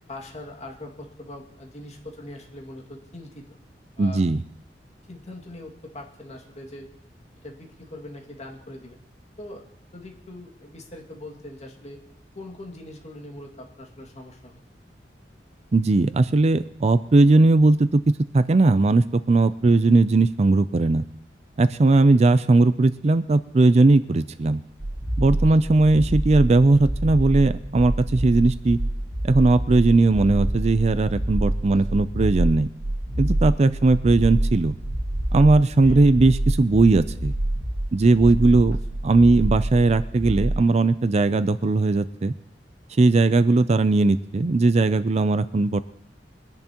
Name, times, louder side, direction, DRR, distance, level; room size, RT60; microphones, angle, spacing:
voice 1, 0.1-3.6 4.0-4.3 5.1-6.9 7.4-9.0 9.4-9.6 9.9-12.0 12.4-14.6 22.1-22.2 25.4-25.7 31.7-31.8 33.6-33.8 35.8-36.1, left 1 dB, 40° left, 0 dB, 2.2 m, -41 dB
voice 2, 4.0-4.4 15.7-21.0 21.6-24.6 25.2-28.8 29.2-32.7 33.2-34.7 35.3-37.3 37.9-38.8 39.0-42.3 43.0-45.8, right 2 dB, 35° right, 13 dB, 0.4 m, -18 dB
sound 1, 24.8-40.6, right 1 dB, 80° right, 1.8 m, -27 dB
23.0 x 10.5 x 3.0 m, 0.77 s
head